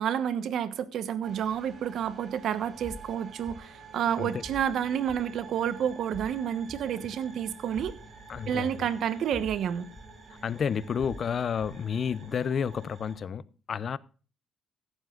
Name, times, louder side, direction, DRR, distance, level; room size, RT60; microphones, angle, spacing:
voice 1, 0.0-7.9 8.5-9.9, right 9 dB, 75° right, 1.1 m, -30 dB
sound 1, 1.2-13.2, right 4 dB, 55° right, 4.2 m, -49 dB
sound 2, 2.8-3.1 3.5-3.6 4.4-4.7 5.1-5.2 6.1-6.3 6.7-6.8 7.7-8.0 8.3-8.4 9.3-9.6 10.0-10.1 11.0-11.2 11.6-11.7, left 1 dB, 30° left, 4.1 m, -43 dB
voice 2, 8.3-8.9 10.4-14.0, left 7 dB, 50° left, 0.6 m, -31 dB
15.5 x 12.0 x 2.5 m
cardioid pair, 90°, 0 cm